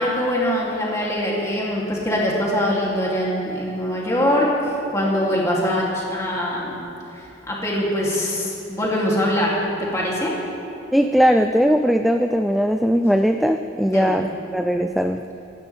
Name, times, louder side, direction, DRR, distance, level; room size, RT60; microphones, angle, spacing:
voice 1, 0.0-4.5 4.9-6.8 7.1-10.3 13.9-14.2, equal, 15° left, -5 dB, 3.0 m, -23 dB
voice 2, 10.9-15.2, equal, ahead, 6 dB, 0.3 m, -19 dB
26.5 x 12.0 x 3.5 m, 2.8 s
head